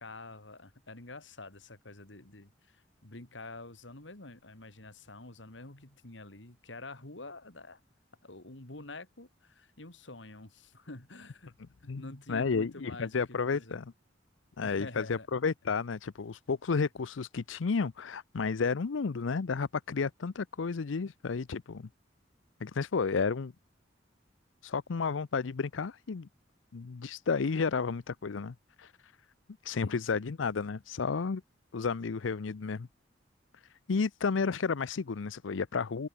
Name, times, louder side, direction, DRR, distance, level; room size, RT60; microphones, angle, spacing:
voice 1, 0.0-7.8 8.2-11.5 11.8-13.8 14.6-15.3 29.8-30.3, left 2 dB, 70° left, 2.9 m, -47 dB
voice 2, 11.9-13.8 14.6-21.9 22.6-23.5 24.6-26.3 26.7-29.1 29.6-31.4 31.7-32.9 33.9-36.1, left 5 dB, 90° left, 0.6 m, -32 dB
open air
head